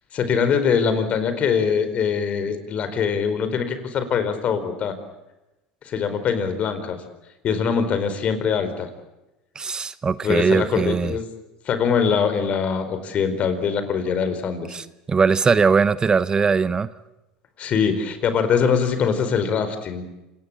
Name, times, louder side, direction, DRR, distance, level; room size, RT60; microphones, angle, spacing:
voice 1, 0.1-5.0 5.8-7.0 7.4-8.9 10.2-11.2 11.6-14.8 17.6-20.0, left 6 dB, 45° left, 10 dB, 4.7 m, -23 dB
voice 2, 9.5-11.1 14.7-16.9, right 5 dB, 25° right, 15 dB, 0.9 m, -20 dB
27.0 x 19.0 x 8.7 m, 0.98 s
hypercardioid pair, 90°, 3 cm